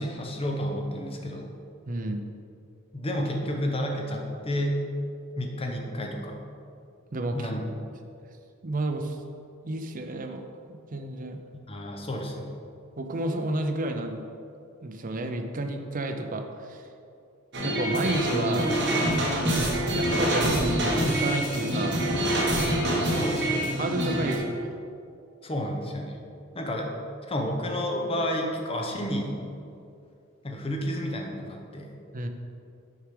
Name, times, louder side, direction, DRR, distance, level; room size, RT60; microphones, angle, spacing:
voice 1, 0.0-1.5 2.9-4.8 5.4-6.4 7.3-7.6 11.7-12.5 23.0-23.7 25.4-26.2 26.5-26.9 27.3-29.4 30.4-31.9, equal, 25° left, 1 dB, 0.8 m, -30 dB
voice 2, 1.9-2.2 7.1-7.5 8.6-9.2 9.6-10.4 10.7-11.4 13.0-14.2 14.8-16.8 17.6-18.7 19.9-22.0 23.8-24.7 32.1-32.3, right 2 dB, 40° right, 5 dB, 0.6 m, -31 dB
sound 1, 17.5-24.4, right 1 dB, 55° right, 1.3 m, -26 dB
6.6 x 4.7 x 5.1 m, 2.5 s
head